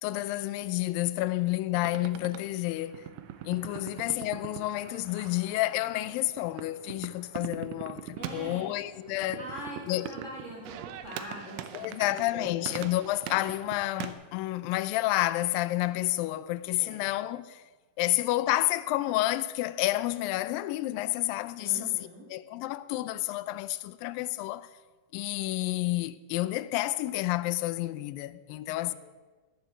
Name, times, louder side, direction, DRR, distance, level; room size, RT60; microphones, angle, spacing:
voice 1, 0.0-3.1 3.5-9.4 9.9-10.1 11.7-17.6 18.0-21.9 22.3-24.7 25.1-29.0, left 16 dB, 90° left, 2.3 m, -30 dB
sound 1, 1.7-14.1, right 10 dB, 90° right, 1.5 m, -42 dB
voice 2, 8.2-8.7 9.3-12.8 16.7-17.0 21.6-22.2 28.8-28.9, equal, 25° right, 2.2 m, -43 dB
11.0 x 7.3 x 8.0 m
omnidirectional pair, 4.0 m